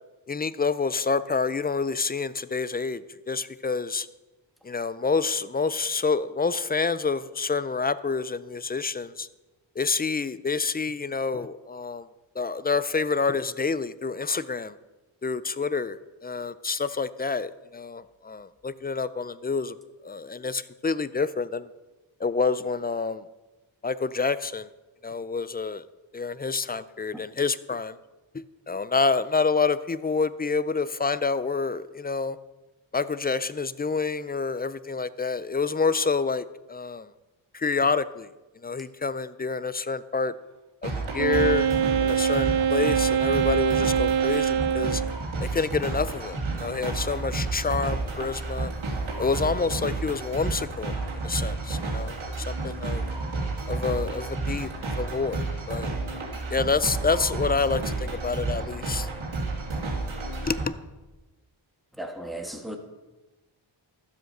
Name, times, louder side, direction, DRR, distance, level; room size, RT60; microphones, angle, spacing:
voice 1, 0.3-3.0 3.3-4.1 4.7-9.3 9.8-12.0 12.4-14.7 15.2-16.0 16.2-19.7 20.0-21.7 22.2-23.2 23.8-24.7 25.0-25.8 26.1-27.9 28.7-32.4 32.9-37.0 37.5-38.3 38.6-40.3 40.8-41.7 42.0-45.0 45.4-48.7 49.2-50.9 51.2-53.0 53.7-54.7 55.0-55.9 56.5-59.1 60.4-60.7, left 4 dB, 20° left, 16 dB, 0.4 m, -28 dB
sound 1, 40.8-60.6, right 3 dB, 80° right, 2.6 m, -31 dB
Wind instrument woodwind instrument, 41.2-45.2, right 7 dB, 55° right, 0.5 m, -24 dB
voice 2, 62.0-62.8, right 1 dB, ahead, 4 dB, 1.5 m, -36 dB
12.0 x 7.8 x 6.5 m, 1.1 s
wide cardioid pair, 95°, 47 cm